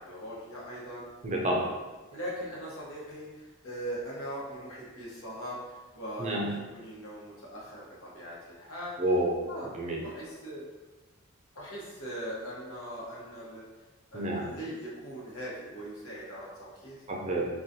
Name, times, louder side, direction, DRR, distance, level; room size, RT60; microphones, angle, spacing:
voice 1, 0.0-1.1 2.1-8.9 9.5-9.7 10.0-10.7 11.5-13.8 14.1-17.0, equal, 70° left, -6 dB, 1.1 m, -40 dB
voice 2, 1.2-1.7 6.2-6.5 9.0-9.4 9.8-10.0 14.1-14.5 17.1-17.5, right 1 dB, 30° right, -1 dB, 0.4 m, -28 dB
3.8 x 2.3 x 2.7 m, 1.2 s
head